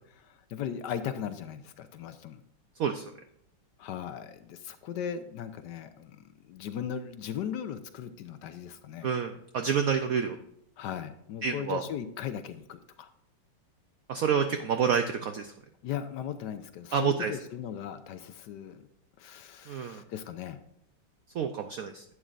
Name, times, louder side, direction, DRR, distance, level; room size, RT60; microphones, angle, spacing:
voice 1, 0.2-2.4 3.8-9.1 10.8-13.1 15.8-18.9 19.2-20.6, left 9 dB, 75° left, 10 dB, 1.1 m, -38 dB
voice 2, 9.0-10.4 11.4-11.8 14.1-15.5 16.9-17.3 19.7-20.0 21.3-22.0, right 7 dB, 75° right, 7 dB, 0.8 m, -28 dB
11.0 x 8.6 x 2.5 m, 0.76 s
omnidirectional pair, 2.1 m